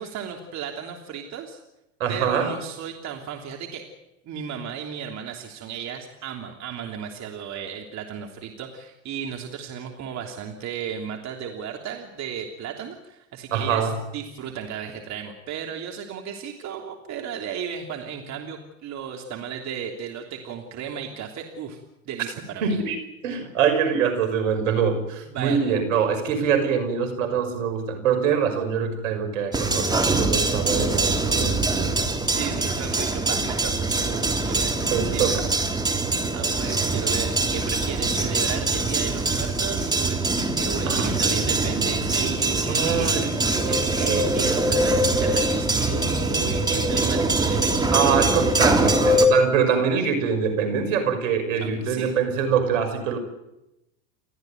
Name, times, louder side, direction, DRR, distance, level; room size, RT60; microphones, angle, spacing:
voice 1, 0.0-1.6 2.1-3.9 4.2-22.8 25.3-25.6 32.3-34.8 35.0-35.4 35.9-43.1 43.7-48.0 51.6-52.1, right 7 dB, 45° right, 2 dB, 3.2 m, -34 dB
voice 2, 2.0-2.5 13.5-14.0 22.6-23.0 23.2-29.9 30.1-32.1 34.9-35.4 40.9-41.1 42.6-43.3 47.9-53.2, right 7 dB, 75° right, 7 dB, 5.9 m, -24 dB
sound 1, 29.5-49.3, right 2 dB, 10° right, 3.4 m, -23 dB
29.5 x 13.5 x 9.3 m, 0.91 s
hypercardioid pair, 90°, 40 cm